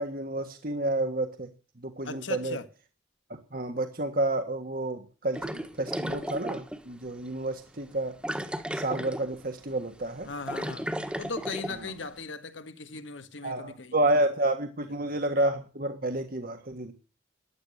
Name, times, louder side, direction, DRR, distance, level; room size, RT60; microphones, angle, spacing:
voice 1, 0.0-1.5 1.8-2.6 3.5-8.1 8.7-10.3 13.4-16.9, right 1 dB, 50° right, 1.5 m, -30 dB
voice 2, 2.0-2.7 10.2-10.9 11.2-13.9 15.0-15.2, left 3 dB, 85° left, 1.6 m, -38 dB
sound 1, 5.3-6.8 7.3-7.4 8.2-9.4 9.7-9.9 10.2-11.8, equal, 5° right, 1.4 m, -34 dB
14.5 x 10.5 x 6.5 m
head